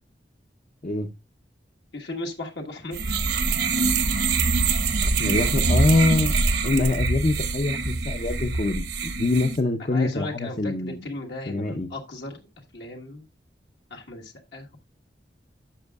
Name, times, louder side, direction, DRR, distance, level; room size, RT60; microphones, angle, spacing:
voice 1, 1.9-3.2 5.2-5.4 9.9-12.4 12.7-13.2 13.9-14.8, left 2 dB, 75° left, 1.5 m, -36 dB
sound 1, 2.9-9.6, right 3 dB, 70° right, 1.1 m, -24 dB
voice 2, 5.0-6.3 6.6-11.1 11.5-11.9, left 2 dB, 40° left, 0.6 m, -24 dB
12.0 x 7.2 x 2.3 m
head